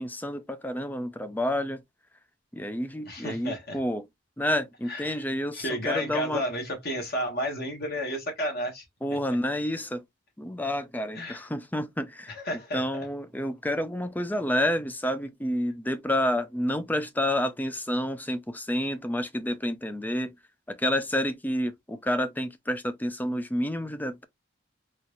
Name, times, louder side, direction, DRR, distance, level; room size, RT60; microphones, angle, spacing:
voice 1, 0.0-1.8 2.5-4.1 4.4-6.4 9.0-10.0 10.4-12.3 12.7-20.3 20.7-24.2, left 1 dB, 10° left, 0.5 m, -29 dB
voice 2, 3.1-3.8 4.9-5.2 5.5-8.8 11.1-11.4 12.3-12.8, equal, 50° left, 1.6 m, -32 dB
4.2 x 2.6 x 3.1 m
head